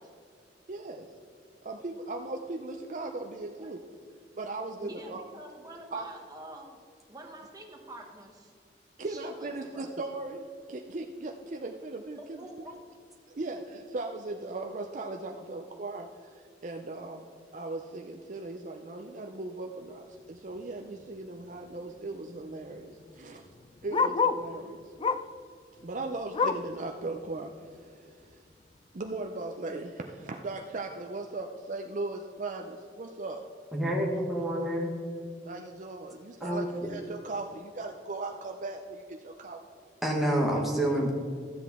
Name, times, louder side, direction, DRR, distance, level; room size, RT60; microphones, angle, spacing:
voice 1, 0.7-1.1 1.6-3.8 4.4-5.2 5.9-6.0 9.0-12.6 13.3-16.1 16.6-17.2 17.5-23.4 23.8-24.9 25.8-28.4 28.9-33.4 34.0-34.1 35.4-39.6, right 2 dB, 45° right, 3 dB, 0.5 m, -38 dB
voice 2, 4.8-6.8 7.1-8.5 9.0-9.9 12.2-12.8, right 1 dB, 20° right, 0 dB, 1.4 m, -46 dB
Bark, 20.8-21.0 21.4-21.5 21.7-24.5 25.0-25.4 25.8-26.8 27.2-27.3 27.7-27.8 28.5-28.6, left 5 dB, 30° left, 0.3 m, -30 dB
voice 3, 33.7-34.9 36.4-36.9 40.0-41.1, right 1 dB, ahead, -3 dB, 1.4 m, -28 dB
14.0 x 7.9 x 3.6 m, 2.2 s
head